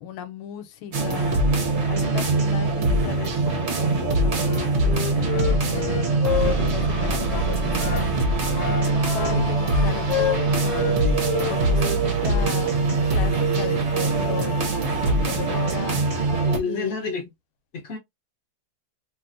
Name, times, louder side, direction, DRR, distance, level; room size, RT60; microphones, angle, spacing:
voice 1, 0.0-1.4 1.9-5.9 6.4-8.2 8.7-11.1 11.5-12.8 13.0-16.0 16.7-17.3, left 9 dB, 85° left, 1.5 m, -36 dB
sound 1, 0.9-16.6, right 2 dB, 55° right, 0.7 m, -22 dB
Wind instrument woodwind instrument, 4.4-8.1 8.5-11.0 11.2-12.5, left 9 dB, 70° left, 1.1 m, -29 dB
voice 2, 16.4-17.2 17.7-18.0, left 4 dB, 55° left, 0.8 m, -29 dB
3.2 x 2.6 x 2.5 m
omnidirectional pair, 2.2 m